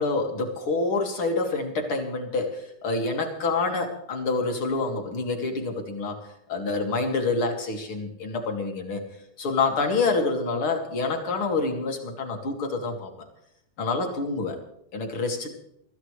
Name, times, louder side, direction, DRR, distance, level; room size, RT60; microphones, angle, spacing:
voice 1, 0.0-6.2 6.5-9.1 9.4-13.1 13.8-14.6 14.9-15.5, left 3 dB, 40° left, 3 dB, 2.3 m, -27 dB
24.0 x 14.0 x 3.3 m, 0.75 s
omnidirectional pair, 4.8 m